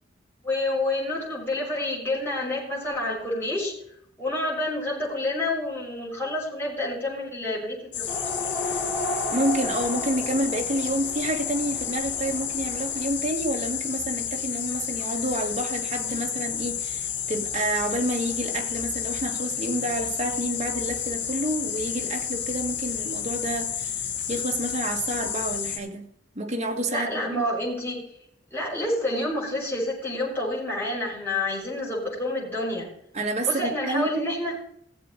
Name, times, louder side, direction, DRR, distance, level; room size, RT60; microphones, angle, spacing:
voice 1, 0.4-3.7 4.2-8.0 26.9-28.0 28.5-32.9 33.5-34.5, left 1 dB, 10° left, 6.5 m, -28 dB
sound 1, 7.9-25.8, left 8 dB, 70° left, 2.2 m, -31 dB
sound 2, 8.1-13.1, left 1 dB, 5° right, 5.9 m, -34 dB
voice 2, 9.3-26.1 26.4-27.4 33.1-34.2, right 1 dB, 35° right, 1.8 m, -29 dB
18.5 x 7.8 x 4.0 m
head